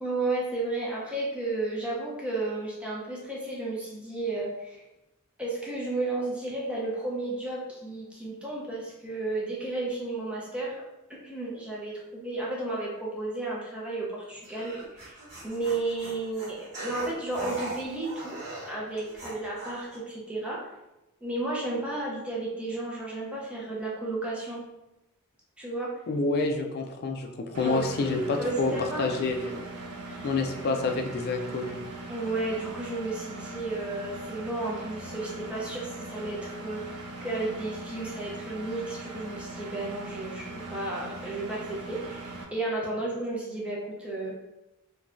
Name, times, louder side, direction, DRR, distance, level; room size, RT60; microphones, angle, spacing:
voice 1, 0.0-4.8 5.4-10.8 11.1-20.7 21.2-24.6 25.6-26.0 27.6-27.8 28.4-29.1 30.1-30.3 32.1-44.4, right 2 dB, 5° right, -5 dB, 0.6 m, -33 dB
sound 1, 14.4-20.0, right 2 dB, 50° right, 1.0 m, -39 dB
voice 2, 26.1-29.6 30.2-31.8, left 3 dB, 45° left, 4 dB, 0.3 m, -28 dB
Engine, 27.5-42.4, right 2 dB, 80° right, 0.4 m, -40 dB
3.0 x 2.2 x 2.5 m, 0.96 s
head